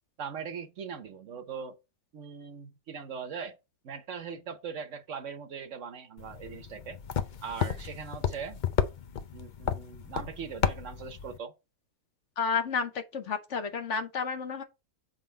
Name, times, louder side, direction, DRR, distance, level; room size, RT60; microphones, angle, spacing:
voice 1, 0.2-1.8 2.1-3.6 3.8-7.0 7.4-8.6 9.3-11.5, right 6 dB, 60° right, 1.1 m, -40 dB
sound 1, 6.2-11.4, left 8 dB, 75° left, 0.4 m, -33 dB
voice 2, 12.4-14.6, left 5 dB, 55° left, 1.1 m, -31 dB
7.3 x 3.8 x 4.4 m
omnidirectional pair, 1.6 m